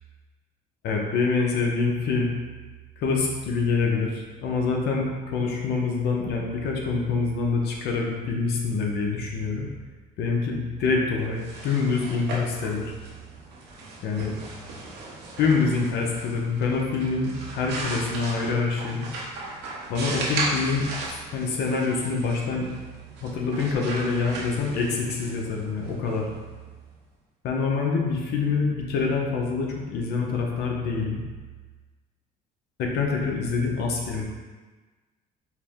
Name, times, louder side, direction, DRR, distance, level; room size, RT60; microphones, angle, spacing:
voice 1, 0.8-2.3 3.0-9.7 10.2-12.9 14.0-14.3 15.4-19.1 19.9-20.8 21.3-22.7 23.2-26.3 27.4-31.2 32.8-34.2, left 4 dB, 75° left, 0 dB, 0.7 m, -26 dB
sound 1, 11.2-26.9, right 2 dB, 85° right, 0.8 m, -37 dB
4.6 x 2.1 x 3.5 m, 1.3 s
cardioid pair, 110°, 17 cm